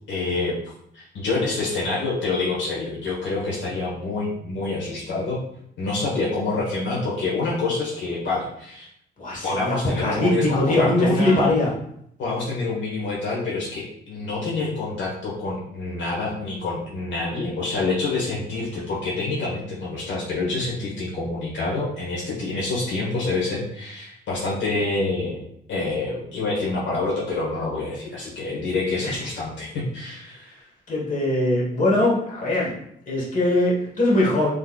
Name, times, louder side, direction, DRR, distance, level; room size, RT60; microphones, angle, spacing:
voice 1, 0.1-0.6 0.9-5.4 5.8-8.9 9.4-11.5 12.2-25.4 25.7-30.6, left 3 dB, 70° left, -5 dB, 1.3 m, -27 dB
voice 2, 9.2-11.7 29.0-29.1 30.9-32.7 33.1-34.5, left 1 dB, 40° left, -4 dB, 1.4 m, -21 dB
3.7 x 3.2 x 2.3 m, 0.72 s
cardioid pair, 90°, 20 cm